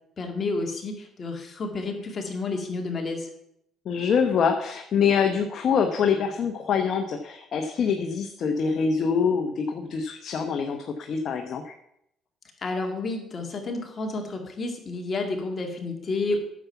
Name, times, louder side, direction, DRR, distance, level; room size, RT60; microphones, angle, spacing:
voice 1, 0.2-3.3 12.6-16.4, left 3 dB, 35° left, 2 dB, 2.1 m, -30 dB
voice 2, 3.8-11.7, left 6 dB, 55° left, 5 dB, 1.0 m, -25 dB
9.7 x 7.1 x 5.8 m, 0.76 s
cardioid pair, 90°, 0 cm